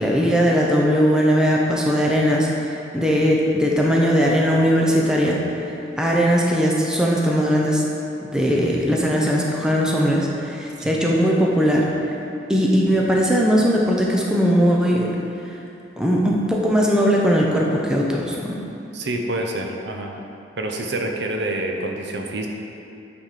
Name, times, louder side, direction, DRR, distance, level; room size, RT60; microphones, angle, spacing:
voice 1, 0.0-5.4 5.7-7.8 8.3-11.9 12.5-15.1 16.0-18.6, equal, 5° right, -3 dB, 0.7 m, -19 dB
voice 2, 18.9-20.2 20.6-22.5, right 1 dB, 65° right, 2 dB, 0.7 m, -27 dB
9.0 x 4.2 x 4.9 m, 2.7 s
head